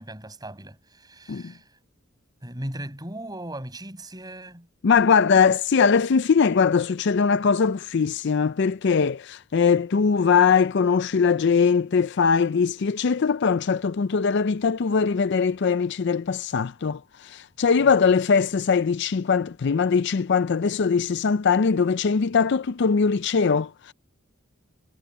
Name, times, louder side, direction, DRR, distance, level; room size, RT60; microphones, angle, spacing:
voice 1, 0.0-1.7 2.4-4.7, right 1 dB, 20° right, 7.0 m, -37 dB
voice 2, 4.8-23.9, left 5 dB, 55° left, 0.4 m, -21 dB
head